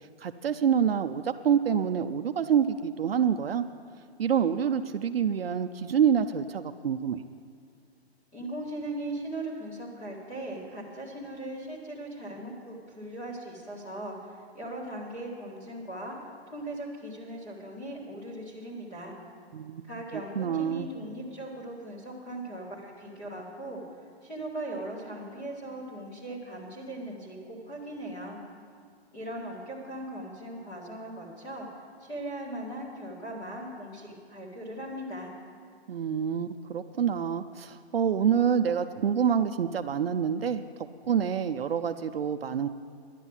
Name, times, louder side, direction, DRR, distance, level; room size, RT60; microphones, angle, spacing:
voice 1, 0.2-3.6 4.2-7.2 19.5-20.9 35.9-42.7, right 8 dB, 60° right, 8 dB, 0.6 m, -27 dB
voice 2, 8.3-16.2 16.5-19.1 19.9-23.8 24.2-28.4 29.1-31.7 32.0-35.3, right 1 dB, 15° left, -5 dB, 1.8 m, -39 dB
11.5 x 10.0 x 7.2 m, 2.2 s
hypercardioid pair, 180°, 33 cm